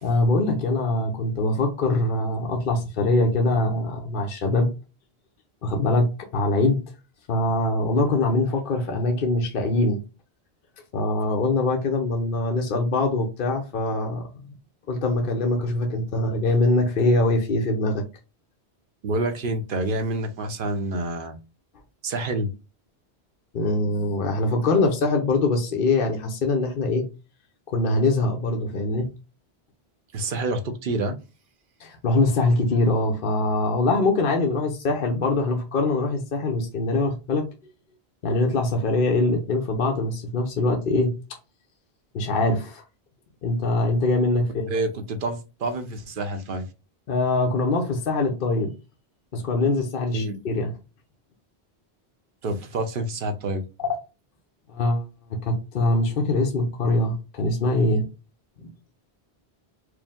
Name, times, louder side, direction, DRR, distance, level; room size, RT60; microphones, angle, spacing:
voice 1, 0.0-4.7 5.6-6.8 7.3-10.0 10.9-14.2 14.9-18.0 23.5-27.1 27.7-29.1 31.8-37.5 38.2-41.1 42.1-42.8 43.4-44.7 47.1-48.7 49.3-50.7 54.7-55.0 55.3-58.1 58.6-58.7, left 2 dB, 55° left, 0.8 m, -23 dB
voice 2, 19.0-21.4 22.0-22.5 30.1-31.2 44.7-46.7 50.1-50.4 52.4-53.6, right 2 dB, 60° right, 0.8 m, -28 dB
4.8 x 2.0 x 3.5 m
omnidirectional pair, 1.1 m